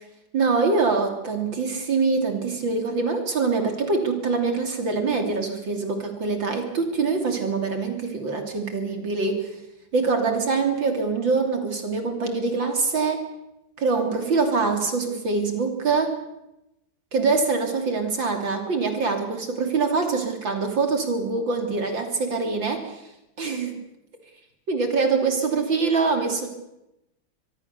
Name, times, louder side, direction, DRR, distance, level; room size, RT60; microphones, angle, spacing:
voice 1, 0.3-9.5 9.9-13.2 13.8-16.1 17.1-23.0 23.4-23.8 24.7-26.5, right 4 dB, 60° right, 4 dB, 3.7 m, -24 dB
24.5 x 21.5 x 6.9 m, 0.89 s
omnidirectional pair, 2.3 m